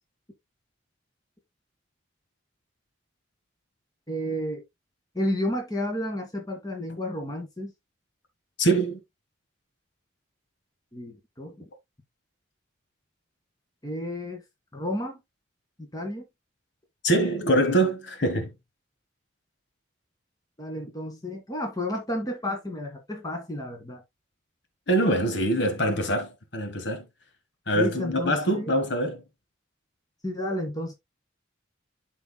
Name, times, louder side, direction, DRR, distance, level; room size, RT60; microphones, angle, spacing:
voice 1, 4.1-4.6 5.1-7.7 10.9-11.7 13.8-14.4 14.7-15.2 15.9-16.3 20.6-24.0 27.8-28.7 30.2-30.9, left 1 dB, 20° left, 1.9 m, -31 dB
voice 2, 8.6-9.0 17.0-18.5 24.9-27.1 27.7-29.2, right 1 dB, 65° left, 1.5 m, -24 dB
12.0 x 4.6 x 2.2 m
head